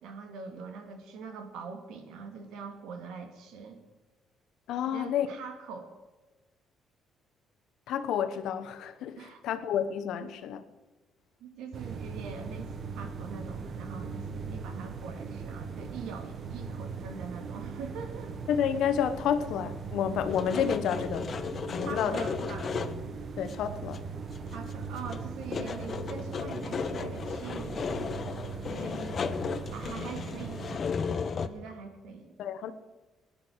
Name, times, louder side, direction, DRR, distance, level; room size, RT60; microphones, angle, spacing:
voice 1, 0.0-3.8 4.9-5.9 9.1-9.4 10.2-10.3 11.4-18.4 21.8-22.7 24.5-27.8 28.7-29.0 29.7-30.8 31.4-32.4, right 5 dB, 85° right, 2.1 m, -43 dB
voice 2, 4.7-5.3 7.9-9.2 9.4-10.6 18.5-21.3 21.7-22.2 23.4-24.0 28.7-29.1 32.4-32.7, left 8 dB, 80° left, 1.1 m, -30 dB
sound 1, 11.7-30.8, right 5 dB, 55° right, 1.3 m, -40 dB
sound 2, 20.3-23.1 23.4-23.6 23.9-24.7 25.0-31.5, left 6 dB, 45° left, 0.9 m, -35 dB
17.5 x 10.5 x 6.3 m
cardioid pair, 95°, 0 cm